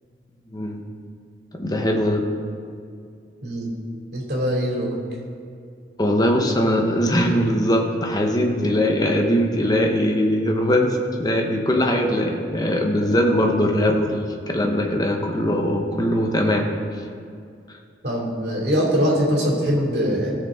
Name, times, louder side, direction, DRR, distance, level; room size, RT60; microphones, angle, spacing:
voice 1, 0.5-0.8 1.6-2.2 6.0-16.7, equal, 20° left, 2 dB, 1.0 m, -21 dB
voice 2, 4.1-4.9 18.0-20.3, equal, 60° right, -3 dB, 2.8 m, -22 dB
17.0 x 6.6 x 3.7 m, 2.4 s
head